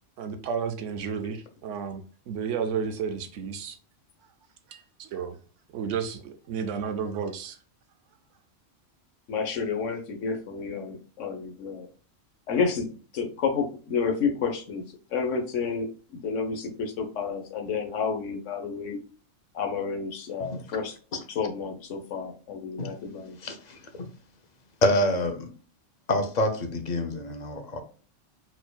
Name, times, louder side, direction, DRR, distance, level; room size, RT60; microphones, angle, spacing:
voice 1, 0.2-3.8 4.7-5.4 5.7-7.6, right 6 dB, 85° right, 1.0 m, -32 dB
voice 2, 9.3-11.9 12.5-12.9 13.1-14.8 15.1-15.9 16.2-19.0 19.5-21.0 21.3-23.4, left 5 dB, 85° left, 1.3 m, -30 dB
voice 3, 23.4-24.1 24.8-25.5 26.1-27.8, left 1 dB, 45° left, 0.7 m, -27 dB
4.4 x 4.2 x 2.3 m
omnidirectional pair, 1.2 m